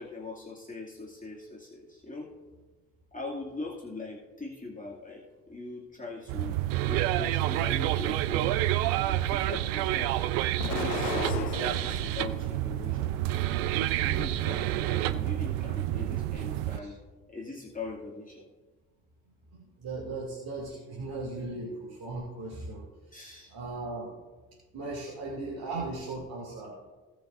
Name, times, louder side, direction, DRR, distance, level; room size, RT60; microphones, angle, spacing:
voice 1, 0.0-2.3 3.1-6.6 6.9-10.2 10.6-13.1 14.0-17.0 17.3-18.5 23.1-23.5, left 3 dB, 15° left, -4 dB, 2.5 m, -41 dB
sound 1, 6.3-16.8, right 14 dB, 75° right, 0.7 m, -28 dB
Explosion, 10.6-12.2 12.8-13.7, left 8 dB, 85° left, 0.9 m, -36 dB
voice 2, 19.5-23.2 23.5-24.1 24.7-26.8, right 2 dB, 50° right, -4 dB, 2.9 m, -38 dB
18.5 x 6.7 x 2.6 m, 1.3 s
hypercardioid pair, 45°, 46 cm